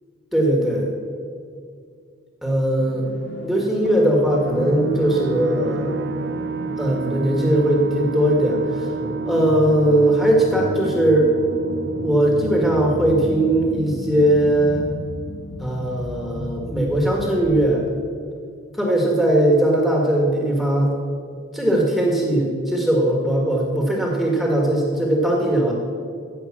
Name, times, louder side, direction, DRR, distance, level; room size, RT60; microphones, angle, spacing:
voice 1, 0.3-0.8 2.4-3.0 3.4-5.9 6.8-8.9 9.2-11.3 12.0-14.9 15.6-17.9 18.7-20.9 21.5-25.7, right 1 dB, ahead, -1 dB, 1.5 m, -19 dB
sound 1, 2.8-17.7, left 1 dB, 55° left, 0.9 m, -34 dB
sound 2, 3.9-15.1, right 5 dB, 55° right, 0.5 m, -30 dB
15.0 x 5.4 x 7.3 m, 2.2 s
head